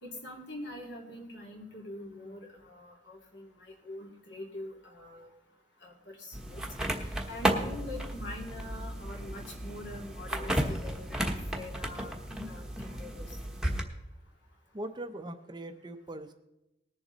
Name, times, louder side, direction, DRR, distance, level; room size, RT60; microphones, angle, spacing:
voice 1, 0.0-5.3 5.8-6.6 7.0-12.1 12.5-13.4, left 1 dB, 65° left, 0 dB, 2.8 m, -44 dB
sound 1, 6.3-13.8, right 1 dB, 5° right, 1.1 m, -33 dB
voice 2, 14.7-16.3, right 1 dB, 25° right, 8 dB, 0.6 m, -40 dB
20.0 x 7.1 x 4.0 m, 0.91 s
head